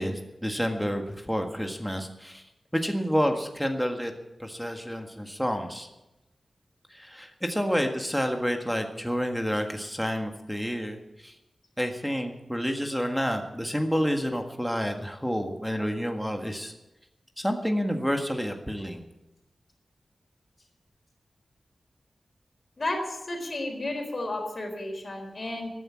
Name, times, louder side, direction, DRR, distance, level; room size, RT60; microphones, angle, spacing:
voice 1, 0.0-2.4 2.7-4.1 4.4-5.9 6.9-11.3 11.8-16.7 17.4-19.0, equal, ahead, 4 dB, 1.7 m, -29 dB
voice 2, 22.8-25.7, left 2 dB, 40° left, 2 dB, 4.1 m, -32 dB
14.0 x 9.7 x 8.6 m, 0.94 s
wide cardioid pair, 115°, 0 cm